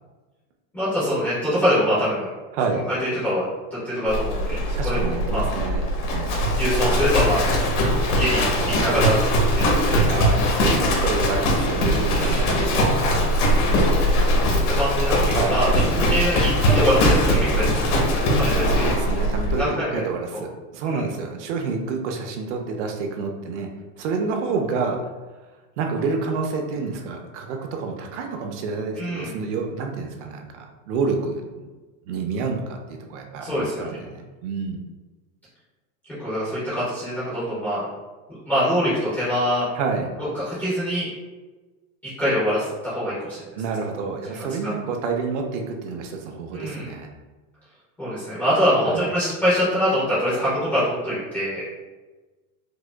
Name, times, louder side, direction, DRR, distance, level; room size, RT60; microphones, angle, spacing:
voice 1, 0.7-2.3 2.9-3.4 3.7-5.4 6.6-7.5 8.1-9.9 10.6-10.9 12.1-12.5 14.3-18.0 18.3-18.7 19.6-20.0 20.3-20.4 20.8-21.0 29.0-29.3 33.4-33.7 36.2-37.8 38.5-39.7 40.3-41.1 42.2-43.4 44.3-44.7 46.5-46.9 48.0-51.6, equal, 5° left, -13 dB, 0.3 m, -24 dB
voice 2, 2.5-2.8 4.7-6.4 8.9-9.1 10.0-13.2 15.3-15.6 18.6-23.7 24.0-25.0 25.8-31.7 32.1-34.8 39.7-40.1 43.6-47.1 48.8-49.1, right 4 dB, 55° right, 3 dB, 0.5 m, -28 dB
Livestock farm animals working animals, 4.1-19.6, equal, 80° left, 1.1 m, -21 dB
4.8 x 2.1 x 2.3 m, 1.2 s
supercardioid pair, 175°, 43 cm